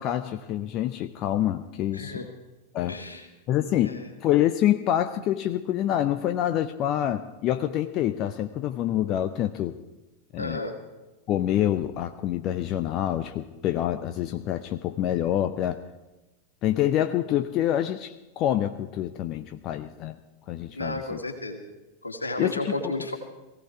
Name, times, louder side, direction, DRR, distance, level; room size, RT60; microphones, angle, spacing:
voice 1, 0.0-2.2 2.7-2.9 3.5-9.8 10.3-10.6 11.3-15.8 16.6-20.2 20.5-21.2 22.4-22.6, left 12 dB, 35° left, 10 dB, 0.7 m, -26 dB
voice 2, 1.9-2.3 2.9-3.3 3.8-4.1 10.4-10.8 20.7-21.6 22.0-23.2, left 2 dB, 80° left, 4 dB, 2.2 m, -32 dB
19.0 x 16.5 x 4.6 m, 1.1 s
figure-of-eight pair, 90°, 0 cm